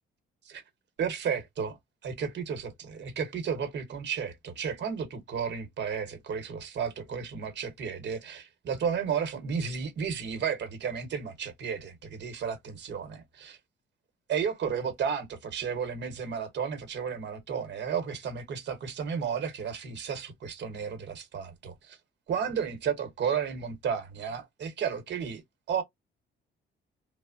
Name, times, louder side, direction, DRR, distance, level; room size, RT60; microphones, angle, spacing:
voice 1, 1.0-1.8 2.0-13.6 14.3-22.0 22.3-25.4 25.7-25.8, right 7 dB, 55° right, 0.9 m, -33 dB
3.2 x 2.0 x 2.4 m
cardioid pair, 125°, 21 cm